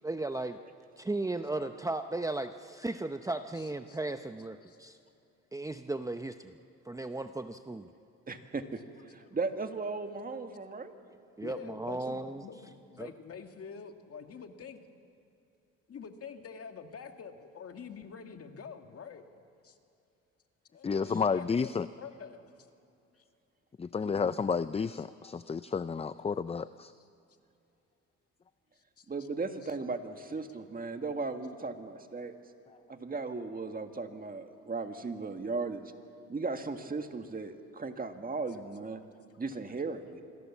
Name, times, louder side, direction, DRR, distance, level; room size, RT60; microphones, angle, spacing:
voice 1, 0.0-0.6 1.0-5.0 5.5-6.5 6.9-7.9 11.4-12.4 13.0-13.1, right 2 dB, 10° right, 0.8 m, -36 dB
voice 2, 3.5-4.0 4.6-4.8 10.6-10.8 11.4-14.8 15.9-19.8 20.7-21.7 22.0-22.5 23.1-23.2 23.9-24.3 29.0-29.1 29.6-29.8, left 6 dB, 50° left, 1.9 m, -47 dB
voice 3, 8.3-8.8 9.1-10.9 29.1-32.4 32.9-35.8 36.3-39.0 39.4-40.2, right 3 dB, 30° right, 1.9 m, -36 dB
voice 4, 20.8-21.9 23.8-26.9, left 5 dB, 20° left, 0.5 m, -31 dB
27.0 x 21.5 x 7.3 m
cardioid pair, 90°, 30 cm